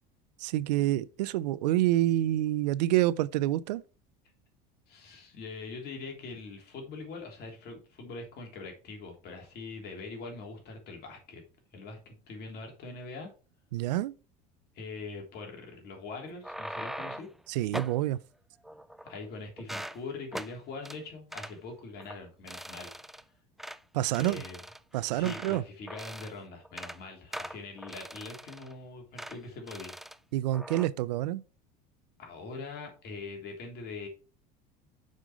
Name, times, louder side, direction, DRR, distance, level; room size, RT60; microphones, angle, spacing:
voice 1, 0.4-3.8 13.7-14.2 17.5-18.2 23.9-24.4 24.9-25.6 30.3-31.4, right 14 dB, 85° right, 0.4 m, -27 dB
voice 2, 4.9-11.4 11.7-13.3 14.7-17.3 19.0-22.9 24.1-24.6 25.1-30.0 32.2-34.1, left 3 dB, 50° left, 3.1 m, -43 dB
sound 1, 16.2-17.4 17.7-18.0 18.6-19.3 19.6-20.0 20.3-20.5 20.9-21.0 21.3-21.6 22.0-22.2 22.5-23.2 23.6-23.8 24.1-25.6 25.9-26.4 26.7-27.0 27.3-28.7 29.2-29.4 29.7-30.2 30.5-30.9, right 1 dB, ahead, 0.3 m, -41 dB
6.4 x 5.3 x 4.6 m
supercardioid pair, 90°, 21 cm